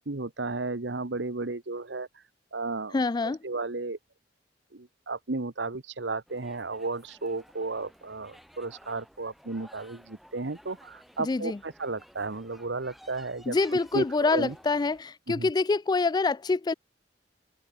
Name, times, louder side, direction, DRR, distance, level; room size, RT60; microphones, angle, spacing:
voice 1, 0.0-2.2 2.5-2.9 3.2-4.0 4.7-13.6 13.9-14.5 15.3-15.5, right 3 dB, 75° right, 1.2 m, -34 dB
voice 2, 2.9-3.4 11.2-11.6 13.5-16.7, left 3 dB, 25° left, 0.3 m, -26 dB
sound 1, 6.3-15.0, equal, ahead, 3.4 m, -55 dB
head